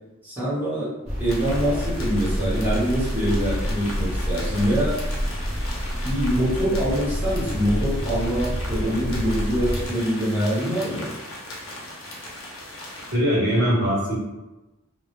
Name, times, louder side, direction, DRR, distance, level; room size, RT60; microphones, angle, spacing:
voice 1, 0.2-5.0 6.0-11.1, equal, 10° right, -10 dB, 0.9 m, -24 dB
sound 1, 1.1-9.9, equal, 35° right, 0.8 m, -28 dB
sound 2, 1.3-13.2, left 1 dB, 70° left, 0.6 m, -38 dB
voice 2, 13.1-14.1, equal, 55° right, -7 dB, 0.9 m, -21 dB
2.1 x 2.1 x 2.9 m, 1.0 s
head